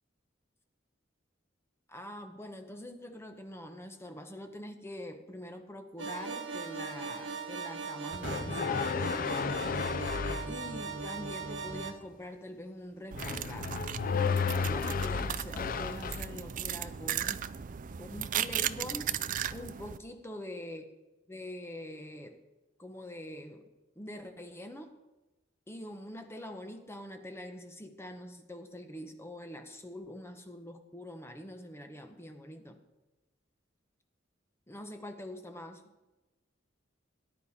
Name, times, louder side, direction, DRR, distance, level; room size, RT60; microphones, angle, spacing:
voice 1, 1.9-9.6 10.5-13.8 14.1-17.5 18.0-19.2 19.5-20.8 21.3-22.4 22.8-23.7 24.0-25.0 25.7-32.8 34.7-35.9, left 1 dB, 15° left, 6 dB, 0.9 m, -44 dB
sound 1, 6.0-11.9, right 4 dB, 70° right, 1.4 m, -39 dB
sound 2, 8.2-10.5 13.2-16.3, left 5 dB, 45° left, 0.5 m, -32 dB
sound 3, 13.1-20.0, right 9 dB, 45° right, 0.4 m, -36 dB
18.5 x 10.5 x 4.2 m, 1.1 s
head